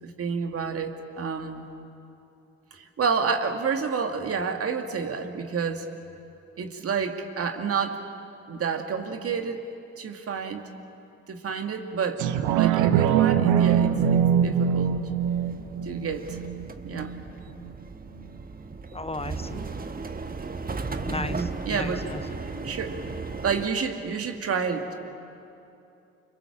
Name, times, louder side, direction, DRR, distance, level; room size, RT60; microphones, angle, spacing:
voice 1, 0.0-1.7 2.7-5.9 6.6-8.0 8.5-9.6 10.0-10.6 11.3-12.2 12.6-15.0 15.8-16.4 16.8-17.1 21.1-22.1 22.6-23.0 23.4-25.1, right 5 dB, 50° right, 5 dB, 2.2 m, -29 dB
sound 1, 12.2-17.2 17.7-17.8, right 8 dB, 70° right, 1.0 m, -23 dB
sound 2, 13.6-23.7, right 4 dB, 30° right, 1.5 m, -37 dB
voice 2, 18.9-19.6 21.1-22.2, left 3 dB, 20° left, 11 dB, 0.9 m, -35 dB
29.5 x 22.5 x 7.4 m, 2.7 s
hypercardioid pair, 45°, 31 cm